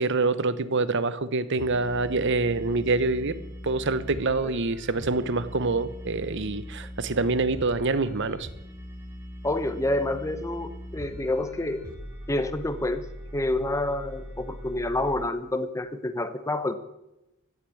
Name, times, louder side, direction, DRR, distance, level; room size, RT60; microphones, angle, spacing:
voice 1, 0.0-3.3 3.6-8.5, right 3 dB, 60° right, 14 dB, 1.0 m, -26 dB
sound 1, 1.6-15.3, equal, 15° right, 2.7 m, -41 dB
voice 2, 9.4-11.8 12.3-13.1 13.3-16.7, left 1 dB, 15° left, 10 dB, 0.9 m, -28 dB
15.5 x 8.3 x 8.5 m, 0.94 s
head